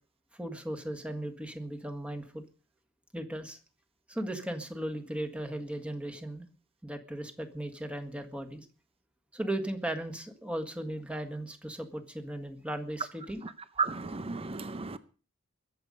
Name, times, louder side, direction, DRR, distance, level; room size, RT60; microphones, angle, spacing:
voice 1, 0.4-2.4 3.1-3.6 4.1-6.4 6.8-8.7 9.3-13.4, right 1 dB, 5° right, 1.7 m, -37 dB
voice 2, 13.8-15.0, right 4 dB, 25° right, 0.7 m, -33 dB
22.0 x 8.1 x 5.4 m
head